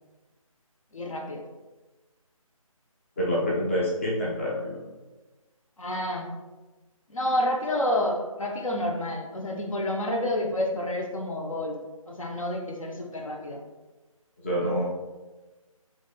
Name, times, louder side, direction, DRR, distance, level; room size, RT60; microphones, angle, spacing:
voice 1, 0.9-1.5 5.8-6.3 7.1-11.8 12.1-13.7, left 1 dB, 65° left, 1 dB, 0.7 m, -29 dB
voice 2, 3.2-4.8 14.4-14.8, equal, 20° left, -5 dB, 0.5 m, -27 dB
4.0 x 3.0 x 2.2 m, 1.2 s
figure-of-eight pair, 155°, 18 cm